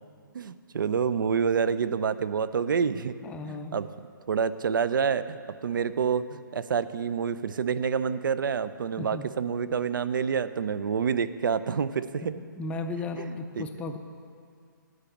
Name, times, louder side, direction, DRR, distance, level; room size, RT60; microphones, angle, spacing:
voice 1, 0.3-3.2 3.5-3.9 4.3-12.2 13.2-13.6, right 6 dB, 70° right, 14 dB, 0.4 m, -28 dB
voice 2, 3.2-3.7 9.0-9.3 12.2-14.0, left 3 dB, 10° left, 6 dB, 0.4 m, -35 dB
9.7 x 5.2 x 7.1 m, 2.3 s
figure-of-eight pair, 135°, 11 cm